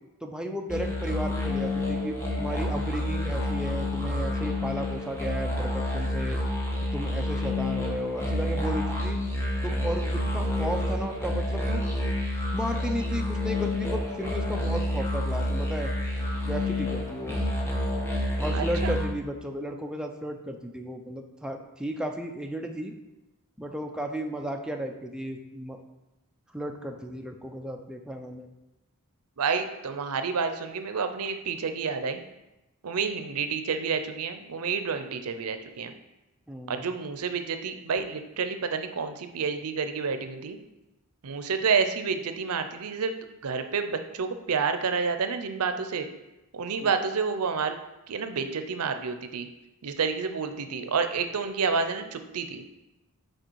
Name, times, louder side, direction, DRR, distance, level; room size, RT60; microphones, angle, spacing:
voice 1, 0.2-6.4 6.9-9.2 9.6-11.8 12.5-15.9 16.5-17.4 18.4-22.9 23.6-25.8 26.5-28.5 36.5-36.8 46.8-46.9, equal, 5° right, 3 dB, 0.5 m, -34 dB
sound 1, 0.7-19.1, left 1 dB, 10° left, 1.2 m, -29 dB
voice 2, 18.5-18.9 29.4-32.2 32.8-35.9 36.7-40.6 41.2-43.1 43.4-46.1 46.5-47.8 48.1-49.5 49.8-52.6, right 5 dB, 85° right, 8 dB, 0.6 m, -29 dB
6.5 x 4.7 x 4.6 m, 0.98 s
head